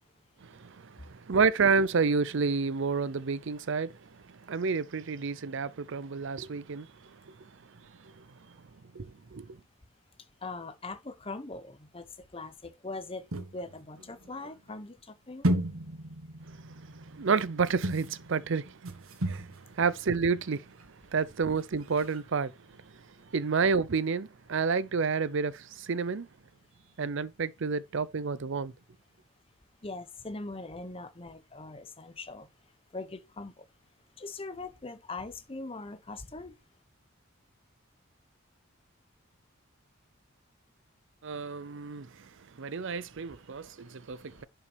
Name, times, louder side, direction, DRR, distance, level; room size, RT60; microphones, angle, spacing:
voice 1, 0.4-7.5 8.0-8.2 8.9-9.6 16.5-20.7 21.1-23.0 23.3-26.3 27.0-28.7 41.2-42.3 42.6-44.5, right 5 dB, 60° right, 0.6 m, -30 dB
voice 2, 10.4-12.0 12.3-13.3 13.5-15.6 29.8-32.5 32.9-33.6 34.2-36.6, left 3 dB, 25° left, 1.0 m, -41 dB
sound 1, 13.3-14.7 15.4-20.5 20.8-20.9 21.2-21.3 21.6-21.7 21.8-22.2, right 1 dB, 85° right, 1.6 m, -35 dB
11.0 x 5.7 x 3.4 m
head